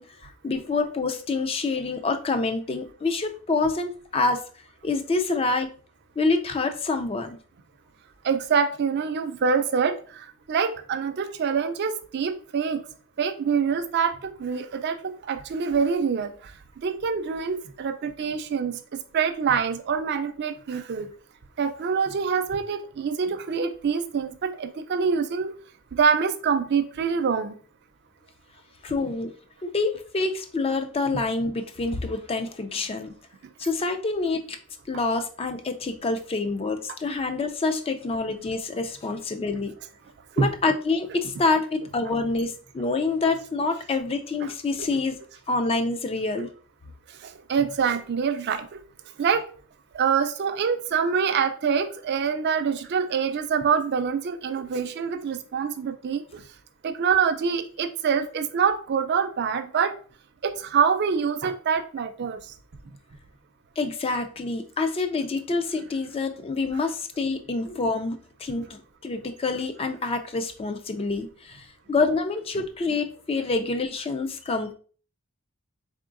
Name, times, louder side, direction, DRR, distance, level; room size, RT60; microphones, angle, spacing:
voice 1, 0.0-4.4 4.8-5.7 6.2-7.4 28.8-29.3 29.6-33.1 33.6-34.6 34.9-39.7 40.4-45.2 45.5-46.5 63.8-74.7, left 3 dB, 25° left, 7 dB, 0.3 m, -27 dB
voice 2, 8.2-12.8 13.2-16.5 16.8-18.8 19.1-21.1 21.6-25.5 26.0-27.5 29.0-29.2 40.4-40.5 44.4-44.5 44.8-44.9 47.2-48.8 49.2-49.5 49.9-56.4 56.8-60.0 60.4-62.4 72.5-72.6, right 6 dB, 50° right, 10 dB, 0.4 m, -25 dB
3.7 x 3.6 x 2.5 m, 0.41 s
head